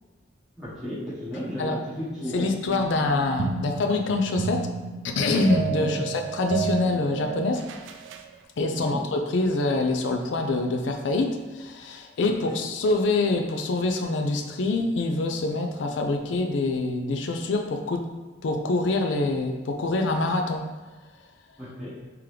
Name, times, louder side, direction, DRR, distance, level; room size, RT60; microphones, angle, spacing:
voice 1, 0.6-2.5 5.7-6.1 8.7-9.0 12.5-12.6 21.6-22.0, equal, 5° right, -12 dB, 1.2 m, -34 dB
voice 2, 2.3-4.7 5.0-7.7 8.6-18.0 18.4-20.7, left 2 dB, 75° left, 4 dB, 0.4 m, -25 dB
sound 1, 2.7-8.3, right 6 dB, 85° right, 0.3 m, -32 dB
3.7 x 3.0 x 3.3 m, 1.2 s
head